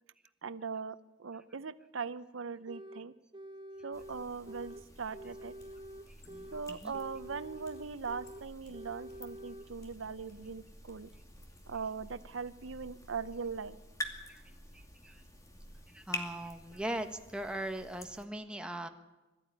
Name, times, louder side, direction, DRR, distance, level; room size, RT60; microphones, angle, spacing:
voice 1, 0.4-3.1 3.8-5.5 6.5-11.1 11.7-13.8, right 5 dB, 90° right, 14 dB, 0.8 m, -40 dB
sound 1, 2.7-3.1 3.3-4.8 5.1-6.7 6.9-8.5 8.7-9.7, right 1 dB, 25° right, 1.3 m, -48 dB
sound 2, 3.9-18.2, left 1 dB, 15° left, 2.5 m, -48 dB
sound 3, 5.6-11.7, left 1 dB, 55° left, 5.4 m, -62 dB
voice 2, 14.7-15.2 15.9-18.9, right 1 dB, 5° right, 5 dB, 1.4 m, -40 dB
21.5 x 14.0 x 9.7 m, 1.1 s
head